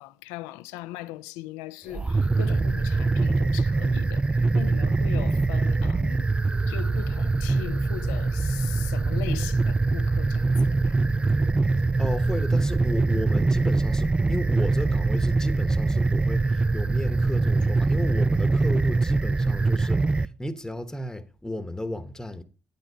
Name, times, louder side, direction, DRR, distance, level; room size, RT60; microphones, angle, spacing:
voice 1, 0.0-6.3 6.7-11.0 19.8-20.1, left 16 dB, 85° left, 0.4 m, -40 dB
sound 1, 1.9-20.3, right 3 dB, 20° right, 0.3 m, -23 dB
voice 2, 12.0-22.4, left 1 dB, 10° left, 1.0 m, -34 dB
10.5 x 8.8 x 2.8 m
hypercardioid pair, 55°, 6 cm